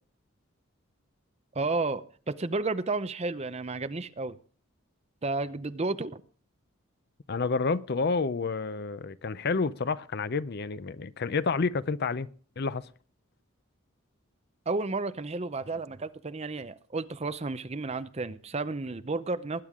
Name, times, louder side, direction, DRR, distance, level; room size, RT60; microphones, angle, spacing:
voice 1, 1.5-4.4 5.2-6.2 14.7-19.6, right 3 dB, 30° right, 0.6 m, -32 dB
voice 2, 7.3-12.3 12.6-12.9, left 4 dB, 50° left, 0.5 m, -29 dB
20.0 x 10.0 x 3.7 m
head